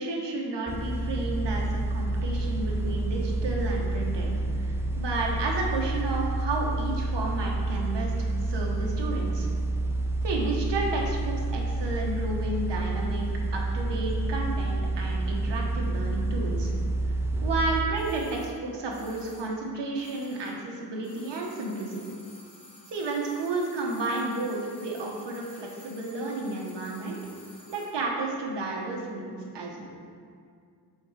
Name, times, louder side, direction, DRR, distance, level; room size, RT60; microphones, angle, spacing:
voice 1, 0.0-4.3 4.6-9.5 10.2-13.3 13.5-16.7 17.4-22.1 22.9-27.2 27.7-29.9, right 2 dB, 75° right, -1 dB, 1.3 m, -32 dB
sound 1, 0.7-17.8, right 2 dB, 5° right, 0.3 m, -29 dB
sound 2, 17.9-20.7 21.0-28.0 28.2-28.3, left 1 dB, 10° left, 1.2 m, -53 dB
7.9 x 3.9 x 4.8 m, 2.2 s
wide cardioid pair, 170°, 42 cm